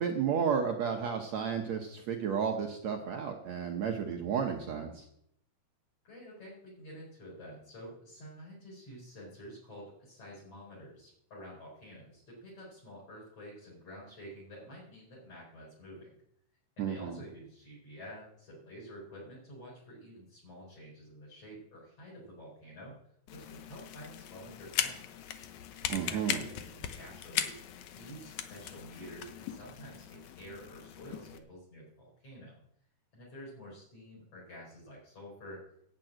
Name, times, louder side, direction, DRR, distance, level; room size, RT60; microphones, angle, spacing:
voice 1, 0.0-5.0 16.8-17.2 25.9-26.4, right 7 dB, 70° right, 3 dB, 1.7 m, -32 dB
voice 2, 6.0-16.1 16.8-22.9 23.3-25.0 25.8-27.6 27.9-32.6 33.1-35.6, equal, 40° left, -6 dB, 5.4 m, -49 dB
sound 1, 23.3-31.4, left 10 dB, 75° left, 1.8 m, -39 dB
10.5 x 7.4 x 9.0 m, 0.74 s
omnidirectional pair, 4.3 m